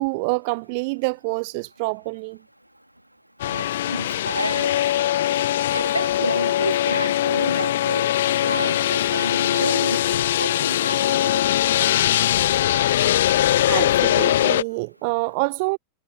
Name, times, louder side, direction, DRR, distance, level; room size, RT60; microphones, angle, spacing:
voice 1, 0.0-2.4 13.3-13.4 13.7-15.8, right 29 dB, 45° right, 0.7 m, -26 dB
sound 1, 3.4-14.6, left 12 dB, 60° left, 0.6 m, -21 dB
voice 2, 3.5-4.8 5.7-8.1 8.4-11.4, right 1 dB, 90° right, 1.7 m, -30 dB
figure-of-eight pair, 90°, 0 cm